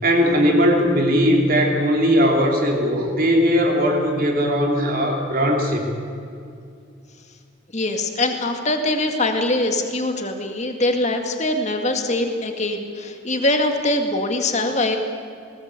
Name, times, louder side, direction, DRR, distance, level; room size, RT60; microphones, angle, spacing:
voice 1, 0.0-5.9, equal, 45° right, 1 dB, 3.2 m, -19 dB
voice 2, 7.7-15.0, left 2 dB, 35° left, 4 dB, 2.0 m, -23 dB
19.5 x 19.0 x 8.3 m, 2.5 s
head